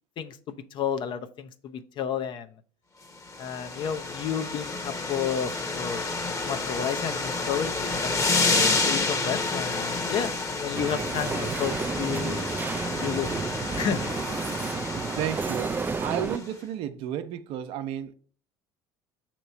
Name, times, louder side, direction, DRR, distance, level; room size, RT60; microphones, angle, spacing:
voice 1, 0.2-2.5 3.4-6.0 6.4-8.3 8.5-10.3 10.6-12.4 13.0-13.5 13.7-14.1, left 8 dB, 55° left, 0.7 m, -31 dB
sound 1, 3.2-16.4, left 3 dB, 30° left, 1.1 m, -29 dB
sound 2, 10.7-16.4, right 5 dB, 20° right, 0.3 m, -31 dB
voice 2, 14.9-15.7 16.0-18.1, right 10 dB, 65° right, 0.7 m, -32 dB
6.9 x 3.0 x 5.4 m
supercardioid pair, 85°, 10 cm